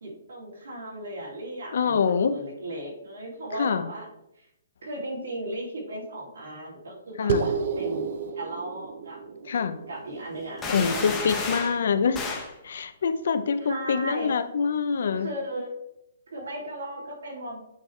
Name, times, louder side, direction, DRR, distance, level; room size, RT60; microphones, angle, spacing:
voice 1, 0.0-2.0 2.3-4.1 4.4-4.5 4.8-9.2 9.9-11.4 13.6-14.4 15.2-15.7 16.3-17.6, right 1 dB, 70° right, -3 dB, 2.6 m, -36 dB
voice 2, 1.7-2.4 3.5-3.9 7.2-7.5 9.4-9.8 10.7-12.2 12.6-15.3, left 6 dB, 60° left, 11 dB, 0.6 m, -25 dB
sound 1, 7.3-12.1, right 5 dB, 45° right, 0.6 m, -32 dB
sound 2, 10.6-11.8 12.1-12.5, left 4 dB, 10° left, 0.8 m, -31 dB
8.4 x 4.7 x 3.2 m, 0.84 s
hypercardioid pair, 170°, 0 cm